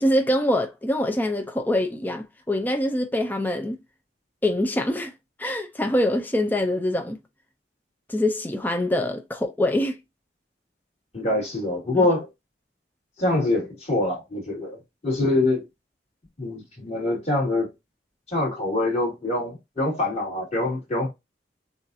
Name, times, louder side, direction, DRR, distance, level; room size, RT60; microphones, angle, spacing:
voice 1, 0.0-3.8 4.4-5.1 5.4-7.2 8.1-10.0, left 1 dB, 10° left, 0.5 m, -24 dB
voice 2, 11.1-12.3 13.2-15.6 16.4-17.7 18.3-21.1, left 2 dB, 35° left, 2.7 m, -25 dB
7.0 x 2.5 x 2.7 m
head